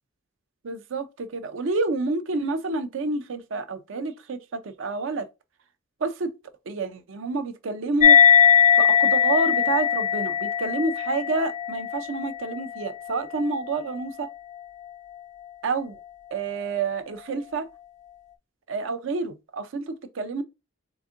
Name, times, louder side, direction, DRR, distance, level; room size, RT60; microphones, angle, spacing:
voice 1, 0.6-5.3 6.0-6.3 6.7-8.2 8.8-14.3 15.6-16.0 16.3-17.7 18.7-20.4, right 3 dB, 70° right, 0.5 m, -29 dB
sound 1, 8.0-14.9, left 8 dB, 35° left, 0.3 m, -21 dB
3.9 x 3.5 x 2.5 m
head